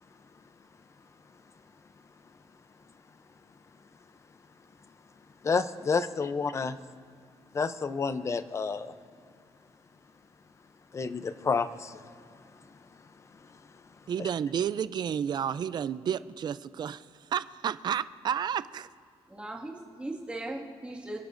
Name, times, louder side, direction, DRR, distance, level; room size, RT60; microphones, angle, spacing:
voice 1, 5.4-6.8 7.5-8.9 10.9-12.1 12.7-12.8 13.3-13.6 14.2-14.3, left 5 dB, 30° left, 12 dB, 0.5 m, -30 dB
voice 2, 14.1-17.1 17.3-18.9, right 8 dB, 45° right, 15 dB, 0.4 m, -31 dB
voice 3, 19.3-21.2, right 1 dB, 10° right, -2 dB, 1.9 m, -38 dB
29.0 x 12.0 x 2.6 m, 2.4 s
cardioid pair, 150°, 10 cm